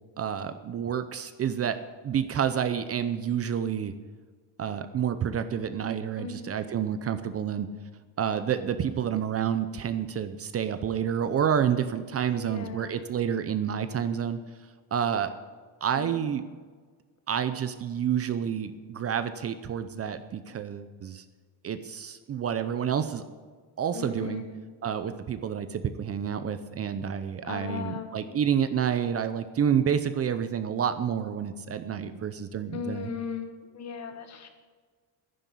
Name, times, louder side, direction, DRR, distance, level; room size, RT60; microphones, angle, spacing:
voice 1, 0.2-1.8 2.0-3.9 4.6-7.7 8.2-14.4 14.9-15.3 15.8-16.4 17.3-21.2 21.6-23.2 23.8-24.4 24.8-33.1, right 8 dB, 35° right, 10 dB, 0.6 m, -29 dB
voice 2, 6.2-6.6 12.3-13.0 16.0-16.2 23.9-24.6 27.4-28.4 32.7-34.5, left 5 dB, 35° left, 6 dB, 1.7 m, -37 dB
11.0 x 10.5 x 8.4 m, 1.5 s
cardioid pair, 150°, 43 cm